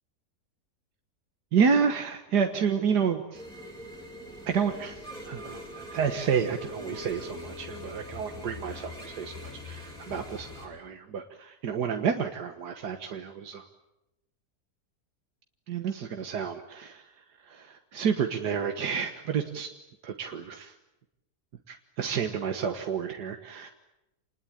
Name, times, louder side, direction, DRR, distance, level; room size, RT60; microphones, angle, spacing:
voice 1, 1.5-3.4 4.5-13.7 15.7-17.1 17.4-19.7 20.0-20.7 21.7-23.7, right 6 dB, 85° right, 5 dB, 1.9 m, -30 dB
sound 1, 3.3-10.7, left 1 dB, ahead, 7.8 m, -42 dB
28.0 x 20.0 x 9.0 m, 0.92 s
omnidirectional pair, 1.7 m